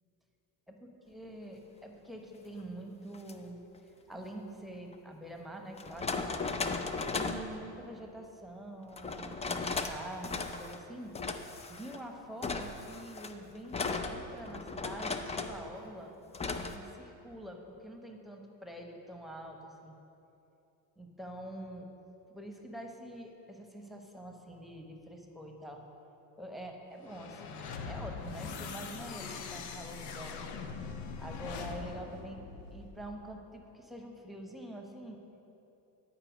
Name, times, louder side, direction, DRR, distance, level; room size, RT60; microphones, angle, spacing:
voice 1, 0.7-3.6 4.1-6.1 7.1-11.1 11.7-16.1 16.5-20.0 21.0-21.9 22.3-25.8 26.4-30.4 31.2-32.4 32.7-35.2, right 1 dB, ahead, 2 dB, 1.0 m, -46 dB
sound 1, 3.1-3.3 4.9-5.0 5.8-7.5 9.0-10.0 10.2-10.8 11.1-12.0 12.4-15.6 16.3-16.8, left 4 dB, 15° left, 0.4 m, -36 dB
sound 2, 27.0-33.3, left 5 dB, 80° left, 0.7 m, -42 dB
10.0 x 4.4 x 5.1 m, 2.9 s
supercardioid pair, 80°, 41 cm